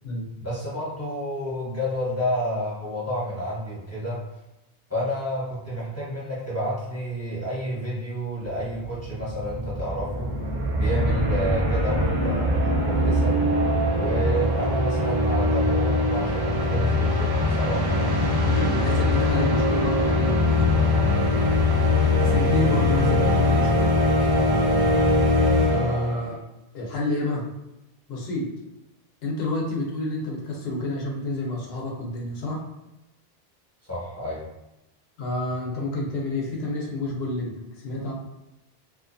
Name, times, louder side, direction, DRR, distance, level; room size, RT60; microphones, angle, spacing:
voice 1, 0.4-4.2 4.9-10.3 10.7-13.4 13.9-18.2 33.8-34.4, equal, 15° left, -8 dB, 0.9 m, -30 dB
sound 1, 8.8-26.3, left 1 dB, 30° right, 0.4 m, -22 dB
voice 2, 18.4-20.9 22.2-23.9 25.7-26.4 26.7-27.4 28.1-28.5 29.2-32.6 35.2-38.1, left 2 dB, 80° left, -2 dB, 0.9 m, -29 dB
2.5 x 2.3 x 2.5 m, 0.93 s
omnidirectional pair, 1.0 m